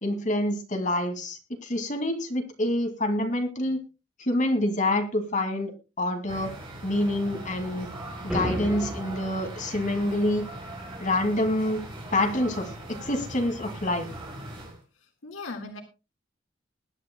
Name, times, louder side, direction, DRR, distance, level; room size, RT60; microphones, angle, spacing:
voice 1, 0.0-3.8 4.2-5.7 6.0-6.5 6.8-7.9 8.2-10.5 11.0-11.8 12.1-14.1, left 1 dB, 40° left, 5 dB, 2.3 m, -27 dB
sound 1, 6.3-14.8, right 1 dB, 25° right, 5.1 m, -40 dB
sound 2, 8.3-9.3, equal, 5° right, 4.4 m, -31 dB
voice 2, 14.9-15.8, left 3 dB, 90° left, 3 dB, 1.8 m, -39 dB
21.0 x 11.0 x 2.2 m, 0.28 s
head